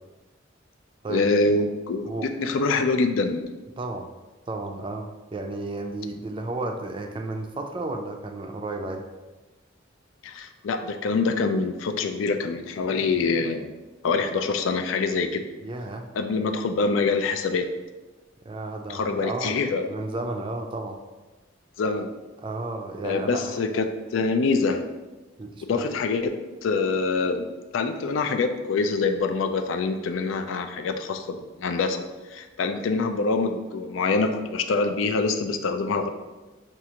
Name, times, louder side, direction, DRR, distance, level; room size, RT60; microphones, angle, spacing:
voice 1, 1.1-2.1 2.4-3.4 10.2-13.7 14.0-15.4 16.1-17.7 18.9-19.9 21.8-22.1 23.0-23.9 24.1-24.8 25.7-26.4 26.6-27.5 27.7-32.0 32.3-36.1, left 4 dB, 85° left, 7 dB, 0.4 m, -25 dB
voice 2, 2.0-2.5 3.8-4.1 4.5-9.0 15.6-16.1 18.5-19.6 19.9-21.0 22.4-23.6 25.4-25.9, right 2 dB, 25° right, 4 dB, 0.4 m, -33 dB
6.1 x 2.4 x 2.8 m, 1.2 s
head